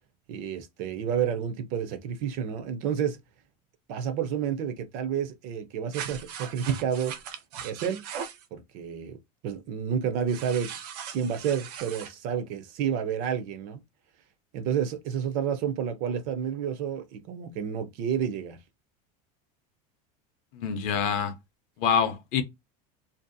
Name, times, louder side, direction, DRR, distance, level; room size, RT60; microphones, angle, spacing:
voice 1, 0.3-3.2 3.9-7.2 7.6-8.0 8.5-9.2 9.4-10.7 11.1-13.8 14.5-18.6, right 8 dB, 40° right, 0.4 m, -30 dB
sound 1, 5.9-8.4 10.3-12.1, right 8 dB, 85° right, 0.6 m, -38 dB
voice 2, 20.5-21.3 21.8-22.4, left 7 dB, 40° left, 0.5 m, -26 dB
2.5 x 2.2 x 2.5 m
cardioid pair, 170°, 20 cm